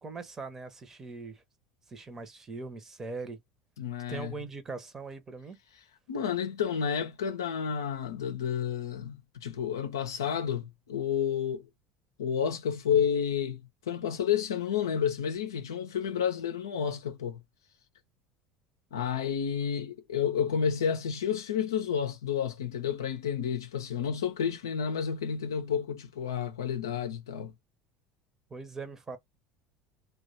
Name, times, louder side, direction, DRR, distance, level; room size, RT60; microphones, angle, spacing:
voice 1, 0.0-1.4 1.9-3.4 4.1-5.6 28.5-29.2, right 4 dB, 20° right, 0.8 m, -41 dB
voice 2, 3.8-4.3 6.1-11.7 12.2-13.6 13.9-17.4 18.9-27.5, left 8 dB, 70° left, 0.5 m, -30 dB
3.0 x 2.3 x 3.9 m
figure-of-eight pair, 70°, 2 cm